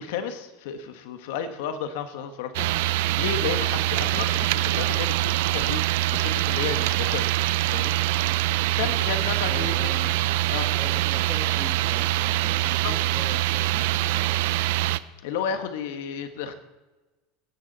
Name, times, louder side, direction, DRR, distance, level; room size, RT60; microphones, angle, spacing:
voice 1, 0.0-2.7 3.0-7.3 7.7-8.0 8.8-10.1 10.5-10.7 12.8-12.9 15.2-16.5, left 7 dB, 75° left, 8 dB, 1.4 m, -32 dB
sound 1, 2.5-15.0, right 16 dB, 75° right, 0.5 m, -24 dB
voice 2, 9.5-10.2 10.7-14.5, left 2 dB, 10° left, 1 dB, 1.8 m, -41 dB
18.5 x 10.0 x 4.1 m, 1.2 s
supercardioid pair, 110°, 0 cm